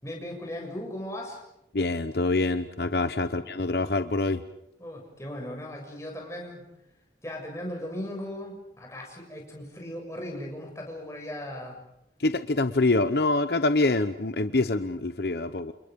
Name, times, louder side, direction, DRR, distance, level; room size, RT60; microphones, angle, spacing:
voice 1, 0.0-1.4 4.8-6.6 7.2-11.8, left 1 dB, 15° left, 0 dB, 7.1 m, -37 dB
voice 2, 1.7-4.4 12.2-15.7, left 2 dB, 65° left, 10 dB, 0.9 m, -25 dB
29.5 x 29.5 x 5.4 m, 0.84 s
head